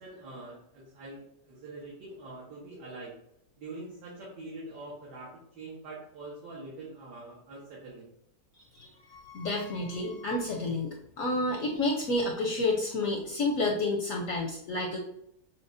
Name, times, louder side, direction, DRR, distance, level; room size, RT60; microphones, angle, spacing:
voice 1, 0.0-3.2 3.6-5.3 5.6-8.1, right 2 dB, 70° right, -7 dB, 1.7 m, -44 dB
voice 2, 8.7-15.0, left 2 dB, 70° left, 0 dB, 0.8 m, -30 dB
6.2 x 2.2 x 2.5 m, 0.76 s
omnidirectional pair, 1.8 m